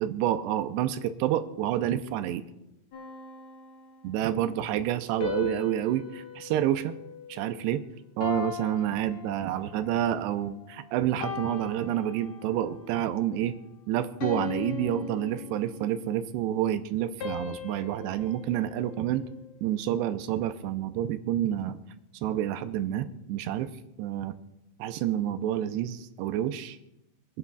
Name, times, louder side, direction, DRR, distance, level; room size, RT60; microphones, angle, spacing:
voice 1, 0.0-2.4 4.0-6.9 7.3-7.8 8.2-13.6 13.9-19.3 19.6-21.8 22.2-23.7 24.0-24.3 24.8-26.8, right 11 dB, 90° right, 10 dB, 2.7 m, -29 dB
sound 1, 2.9-4.2 5.2-7.7 8.2-9.9 10.5-10.7 11.2-12.7 13.2-13.5 14.2-16.1 17.2-19.6, left 7 dB, 60° left, 1.4 m, -39 dB
27.0 x 9.8 x 2.3 m, 0.90 s
omnidirectional pair, 4.8 m